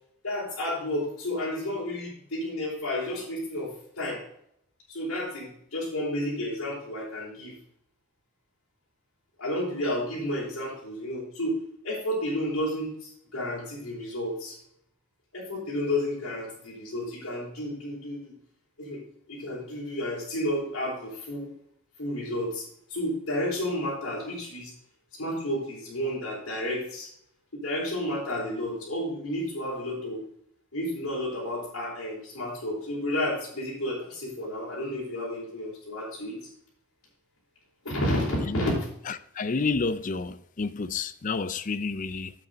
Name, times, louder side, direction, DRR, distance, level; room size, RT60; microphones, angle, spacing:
voice 1, 0.2-3.7 4.0-4.2 4.9-7.6 9.4-11.6 11.8-14.6 15.3-18.3 18.8-19.0 19.3-21.5 22.0-22.6 22.9-24.7 25.1-27.1 27.5-30.2 30.7-36.4 37.8-38.7, left 1 dB, 80° left, 4.2 m, -31 dB
voice 2, 39.1-42.3, left 4 dB, 35° left, 0.4 m, -30 dB
8.6 x 7.7 x 3.9 m
head